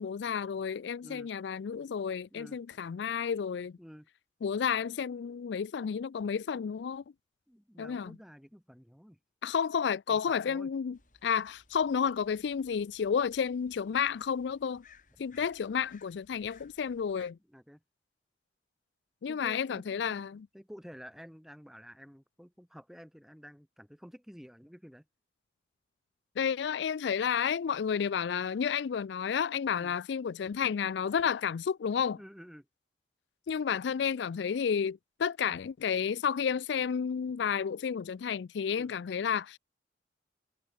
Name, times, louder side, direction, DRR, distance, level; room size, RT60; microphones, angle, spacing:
voice 1, 0.0-3.8 4.4-7.0 7.8-8.1 9.4-14.8 15.2-17.4 19.2-20.5 26.4-32.2 33.5-39.6, left 7 dB, 75° left, 0.4 m, -31 dB
voice 2, 7.5-9.2 10.1-10.7 15.3-15.5 17.5-17.8 19.2-20.3 20.5-25.0 29.7-29.9 32.2-32.7 38.8-38.9, equal, ahead, 6.6 m, -51 dB
sound 1, 10.9-17.3, left 4 dB, 45° left, 7.5 m, -63 dB
head